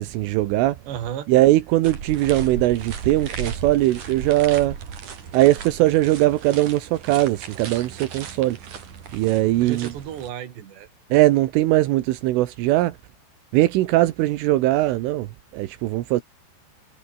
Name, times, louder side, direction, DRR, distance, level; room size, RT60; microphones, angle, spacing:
voice 1, 0.0-0.8 1.3-4.8 5.3-8.6 9.1-9.9 11.1-13.0 13.5-15.3 15.5-16.2, right 16 dB, 85° right, 3.8 m, -20 dB
voice 2, 0.9-1.3 9.6-10.9, right 10 dB, 65° right, 4.7 m, -33 dB
sound 1, 1.8-10.3, right 7 dB, 45° right, 4.0 m, -35 dB
omnidirectional pair, 5.6 m